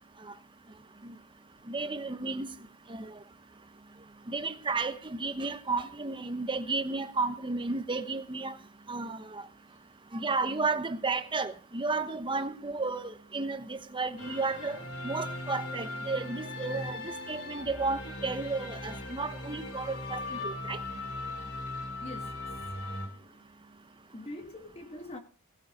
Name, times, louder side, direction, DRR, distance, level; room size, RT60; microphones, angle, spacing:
voice 1, 1.7-2.5 2.9-3.2 4.3-8.6 8.9-9.4 10.1-14.8 15.0-20.8, right 3 dB, 20° right, 1.0 m, -33 dB
sound 1, 14.2-23.1, left 2 dB, 70° left, 4.0 m, -39 dB
voice 2, 21.7-23.5 23.8-25.2, left 1 dB, 25° left, 1.4 m, -46 dB
17.5 x 9.0 x 5.3 m
head